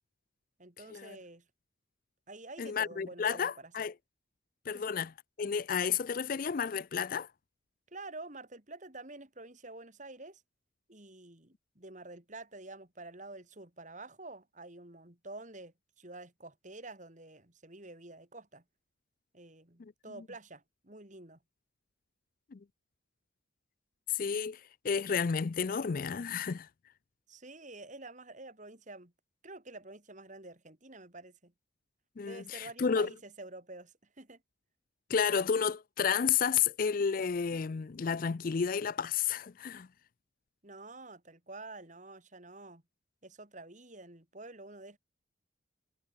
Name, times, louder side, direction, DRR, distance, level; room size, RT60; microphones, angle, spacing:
voice 1, 0.6-1.5 2.3-3.7 4.7-4.9 7.9-10.4 10.9-18.6 19.3-21.4 27.3-29.1 29.4-31.5 32.2-34.4 40.6-42.8 43.2-45.0, right 2 dB, 40° right, 3.0 m, -49 dB
voice 2, 2.6-3.9 4.7-5.1 5.4-7.3 19.8-19.9 22.5-22.6 24.1-26.7 32.2-33.1 35.1-39.9, left 6 dB, 45° left, 0.4 m, -31 dB
head